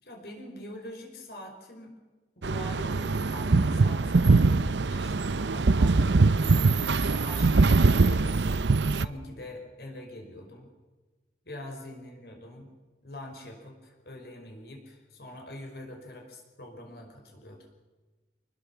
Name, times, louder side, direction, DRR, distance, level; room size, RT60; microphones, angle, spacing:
voice 1, 0.0-1.9 2.4-6.3 7.0-10.7 11.4-12.7 13.0-17.7, left 1 dB, 65° left, 2 dB, 5.5 m, -44 dB
sound 1, 2.4-9.1, right 3 dB, 90° right, 0.7 m, -22 dB
26.0 x 20.0 x 7.3 m, 1.2 s
head